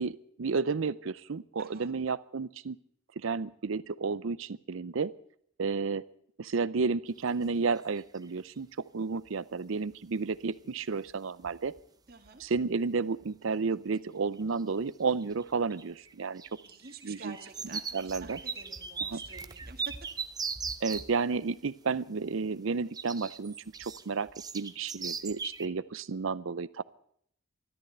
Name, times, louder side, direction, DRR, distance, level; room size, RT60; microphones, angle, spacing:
voice 1, 0.0-2.8 3.2-5.1 5.6-6.0 6.4-8.7 8.9-11.7 12.4-16.4 17.0-17.3 17.7-18.4 19.1-19.2 20.8-24.3 24.5-26.8, right 4 dB, 70° right, 18 dB, 0.6 m, -32 dB
voice 2, 1.6-1.9 7.4-7.7 12.1-12.4 16.6-20.0, right 4 dB, 50° right, 5 dB, 1.8 m, -49 dB
sound 1, 7.2-7.5 7.8-8.4 10.3-10.4 11.1-11.2 11.4-11.8 12.1-12.7 13.2-13.3 14.4-14.8 15.1-21.1 22.9-25.7, right 5 dB, 20° right, 0.6 m, -39 dB
13.5 x 13.5 x 7.9 m, 0.67 s
head